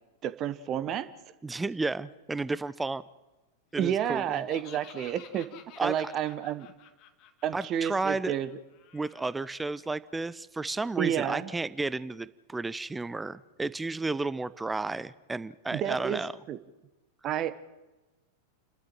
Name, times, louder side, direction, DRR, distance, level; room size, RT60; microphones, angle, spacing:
voice 1, 0.2-1.1 3.8-6.7 7.4-8.5 11.0-11.5 15.7-16.2 16.5-16.6 17.2-17.5, right 10 dB, 30° right, 13 dB, 1.2 m, -30 dB
voice 2, 1.4-3.0 3.7-4.4 5.8-6.1 7.5-8.3 8.9-16.3, right 3 dB, 10° right, 18 dB, 0.6 m, -32 dB
Laughter, 4.0-9.6, left 9 dB, 40° left, 1.9 m, -53 dB
30.0 x 13.0 x 7.8 m, 1.1 s
figure-of-eight pair, 90°, 0 cm